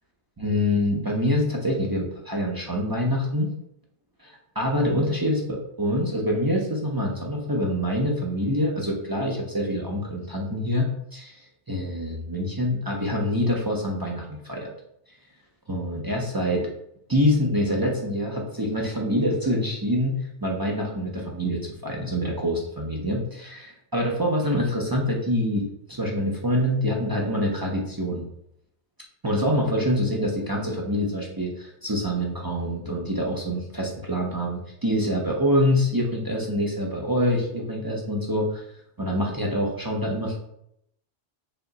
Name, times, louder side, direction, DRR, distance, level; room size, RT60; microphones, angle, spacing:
voice 1, 0.4-3.5 4.2-14.7 15.7-16.7 17.1-28.2 29.2-38.6 39.0-40.4, equal, 30° right, -2 dB, 0.4 m, -25 dB
4.8 x 2.2 x 3.8 m, 0.75 s
omnidirectional pair, 1.2 m